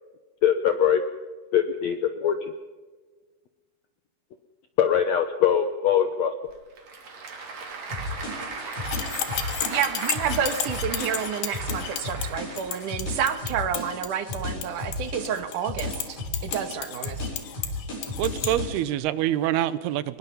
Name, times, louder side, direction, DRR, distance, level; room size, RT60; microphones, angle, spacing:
voice 1, 0.4-1.0 1.5-2.5 4.8-6.3, left 9 dB, 75° left, 1.6 m, -22 dB
Applause / Crowd, 6.5-13.2, right 4 dB, 45° right, 3.7 m, -37 dB
sound 1, 7.9-18.8, left 1 dB, 55° left, 8.9 m, -34 dB
sound 2, 8.7-18.5, left 11 dB, 90° left, 3.5 m, -34 dB
voice 2, 9.7-17.3, right 8 dB, 65° right, 2.5 m, -29 dB
voice 3, 18.2-20.2, right 12 dB, 90° right, 2.9 m, -26 dB
23.0 x 21.5 x 5.6 m
omnidirectional pair, 4.5 m